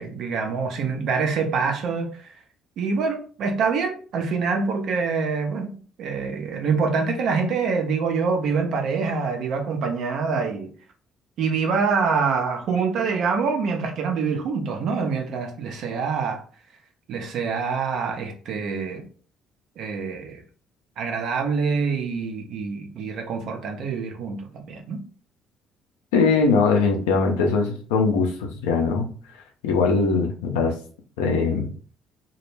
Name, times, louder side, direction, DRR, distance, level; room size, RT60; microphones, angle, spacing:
voice 1, 0.0-2.3 2.8-5.7 6.0-10.7 11.4-16.4 17.1-19.0 19.8-20.4 21.0-25.0, right 5 dB, 65° right, 0.5 m, -25 dB
voice 2, 26.1-29.1 29.6-30.7 31.2-31.7, left 4 dB, 80° left, 0.4 m, -21 dB
2.1 x 2.0 x 3.1 m
hypercardioid pair, 55°, 0 cm